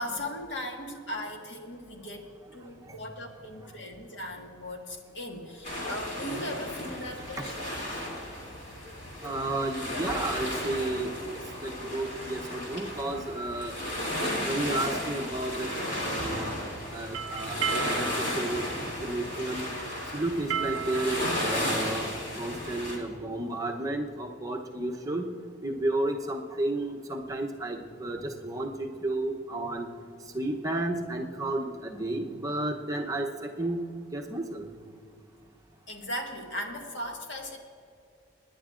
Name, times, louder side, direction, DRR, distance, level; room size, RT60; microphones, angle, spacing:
voice 1, 0.0-7.7 35.9-37.6, left 1 dB, 65° left, 1 dB, 1.7 m, -38 dB
sound 1, 5.6-23.0, left 1 dB, 40° left, 2.7 m, -34 dB
voice 2, 9.2-14.1 14.4-16.6 16.9-18.7 19.0-19.6 20.1-22.1 22.4-25.3 25.6-29.9 30.3-34.7, right 2 dB, 15° right, 1 dB, 0.8 m, -32 dB
sound 2, 17.1-22.7, right 8 dB, 85° right, 0.4 m, -36 dB
26.0 x 10.5 x 2.5 m, 2.4 s
head